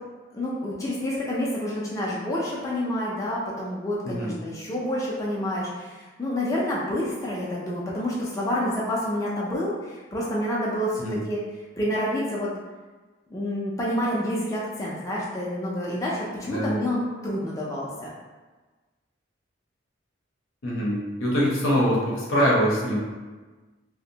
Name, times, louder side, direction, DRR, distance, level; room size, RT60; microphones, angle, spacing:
voice 1, 0.3-11.4 11.8-12.5 13.3-18.1, left 1 dB, 15° left, -5 dB, 0.4 m, -28 dB
voice 2, 20.6-23.0, equal, 90° left, -4 dB, 0.7 m, -23 dB
2.5 x 2.1 x 2.7 m, 1.3 s
head